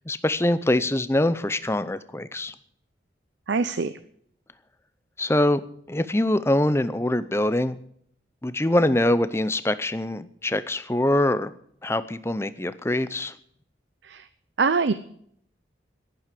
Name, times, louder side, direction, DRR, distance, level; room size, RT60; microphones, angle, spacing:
voice 1, 0.1-2.5 5.2-5.6 5.9-7.8 8.4-11.5 11.8-13.3, left 1 dB, 15° left, 13 dB, 0.6 m, -23 dB
voice 2, 3.5-3.9 14.1-14.2 14.6-14.9, right 4 dB, 75° right, 13 dB, 0.6 m, -23 dB
11.0 x 10.5 x 8.3 m, 0.67 s
head